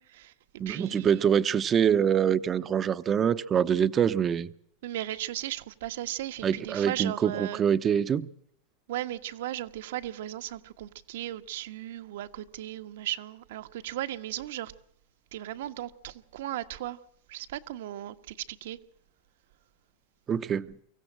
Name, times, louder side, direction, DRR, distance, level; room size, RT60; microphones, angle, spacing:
voice 1, 0.0-1.2 4.8-7.6 8.9-14.7 15.3-17.0 17.3-18.8, right 13 dB, 75° right, 1.4 m, -36 dB
voice 2, 0.6-4.5 6.4-8.3 20.3-20.8, right 8 dB, 25° right, 0.8 m, -25 dB
24.5 x 16.0 x 7.5 m
supercardioid pair, 145°, 0 cm